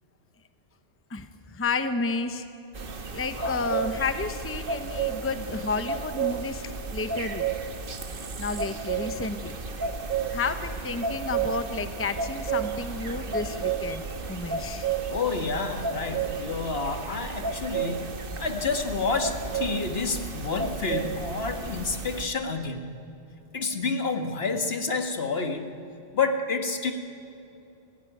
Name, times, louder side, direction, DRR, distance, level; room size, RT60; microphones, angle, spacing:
voice 1, 1.1-2.5 3.1-7.5 8.4-9.6 10.3-14.9, left 3 dB, 15° left, 9 dB, 0.9 m, -31 dB
sound 1, 2.7-22.2, right 5 dB, 50° right, 1.4 m, -32 dB
voice 2, 3.4-3.8 15.1-22.9 23.5-25.8 26.1-26.9, left 4 dB, 60° left, 6 dB, 1.9 m, -29 dB
28.5 x 15.5 x 9.3 m, 2.8 s
omnidirectional pair, 1.2 m